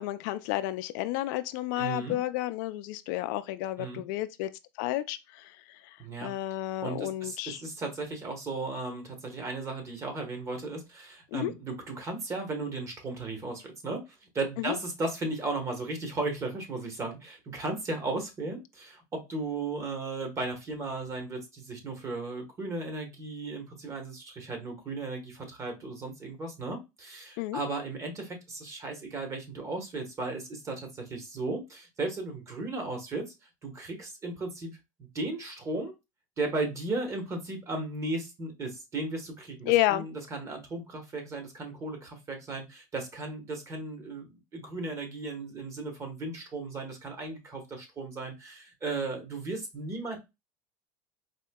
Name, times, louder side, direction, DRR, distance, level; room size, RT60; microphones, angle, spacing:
voice 1, 0.0-4.5 4.8-7.6 11.3-11.5 14.6-14.8 27.4-27.6 39.7-40.1, left 15 dB, 70° left, 0.4 m, -31 dB
voice 2, 1.8-2.2 3.8-4.0 6.0-6.3 6.8-14.0 14.3-33.2 33.6-35.9 36.4-50.2, right 3 dB, 25° right, 1.1 m, -35 dB
4.1 x 2.8 x 2.2 m
supercardioid pair, 135°, 11 cm